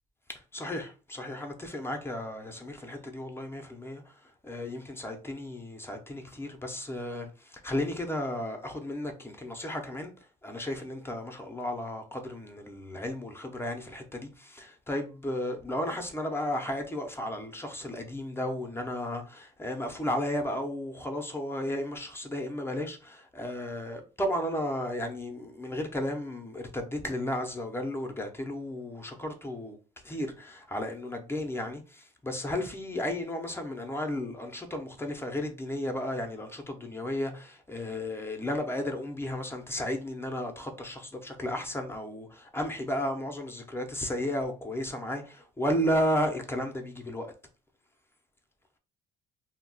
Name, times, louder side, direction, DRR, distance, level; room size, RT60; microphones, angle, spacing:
voice 1, 0.3-10.1 10.4-29.8 30.0-47.3, left 1 dB, 15° left, 0.5 m, -34 dB
2.2 x 2.1 x 3.8 m
cardioid pair, 110°, 17 cm